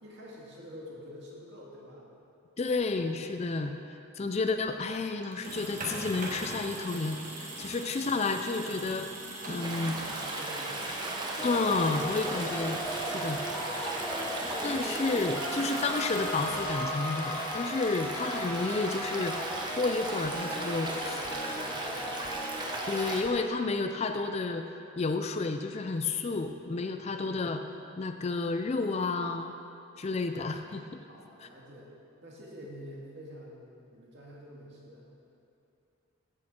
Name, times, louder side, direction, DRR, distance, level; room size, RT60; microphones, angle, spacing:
voice 1, 0.0-2.1 7.8-8.0 9.4-10.9 20.0-20.2 21.1-22.3 27.0-27.3 30.0-30.5 31.1-31.9 32.2-35.1, equal, 55° right, -4 dB, 2.1 m, -48 dB
voice 2, 2.6-9.1 9.5-10.0 11.4-13.4 14.6-21.1 21.5-21.6 22.9-27.6 28.0-29.5 30.0-31.0 31.4-31.5, left 3 dB, 30° left, 7 dB, 0.4 m, -31 dB
sound 1, 5.2-17.1, right 2 dB, 40° right, 1.5 m, -42 dB
Stream, 9.6-23.2, right 2 dB, 20° right, 0.9 m, -37 dB
sound 2, 11.4-23.3, equal, 10° left, 0.8 m, -37 dB
14.5 x 6.7 x 4.4 m, 2.7 s
head